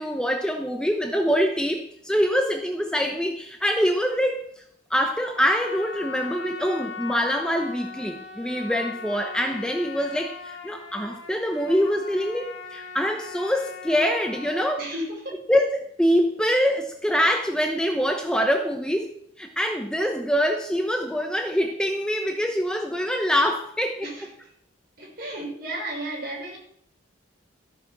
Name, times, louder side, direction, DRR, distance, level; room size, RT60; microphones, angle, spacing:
voice 1, 0.0-4.6 4.9-14.9 15.5-19.1 19.4-24.1, equal, 5° left, 4 dB, 0.8 m, -24 dB
Trumpet, 5.3-14.8, left 5 dB, 70° left, 2.0 m, -39 dB
voice 2, 14.8-15.4 24.0-24.2 25.0-26.6, right 1 dB, 50° right, -2 dB, 5.4 m, -33 dB
14.0 x 8.4 x 6.1 m, 0.70 s
head